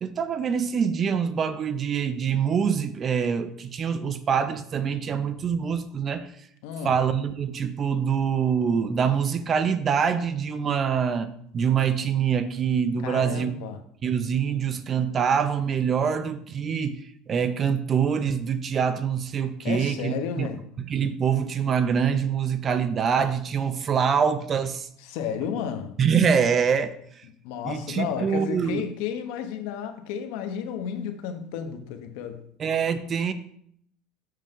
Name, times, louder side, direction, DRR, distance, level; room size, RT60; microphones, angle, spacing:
voice 1, 0.0-6.3 6.8-13.5 14.0-20.5 20.8-24.9 26.0-27.2 27.6-28.8 32.6-33.3, right 7 dB, 25° right, 0.4 m, -25 dB
voice 2, 6.6-6.9 13.0-13.8 19.6-20.6 25.0-26.0 27.4-32.4, left 8 dB, 70° left, 0.9 m, -32 dB
7.5 x 6.6 x 3.7 m
cardioid pair, 170°, 0 cm